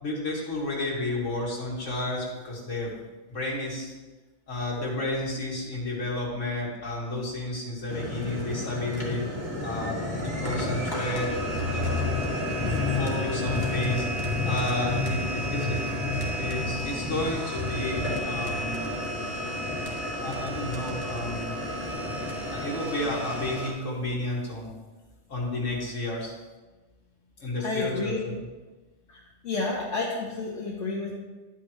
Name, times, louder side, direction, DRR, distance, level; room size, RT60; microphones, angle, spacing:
voice 1, 0.0-2.9 3.3-3.9 4.5-9.3 9.6-11.3 11.7-12.2 12.6-15.9 16.4-18.9 20.1-21.6 22.5-24.7 25.3-26.3 27.4-28.4, left 2 dB, 90° left, -4 dB, 2.4 m, -32 dB
sound 1, 7.9-23.7, left 1 dB, 20° left, 1.9 m, -30 dB
voice 2, 27.6-28.2 29.1-31.1, left 3 dB, 70° left, -4 dB, 1.5 m, -31 dB
11.0 x 8.7 x 3.1 m, 1.2 s
omnidirectional pair, 1.3 m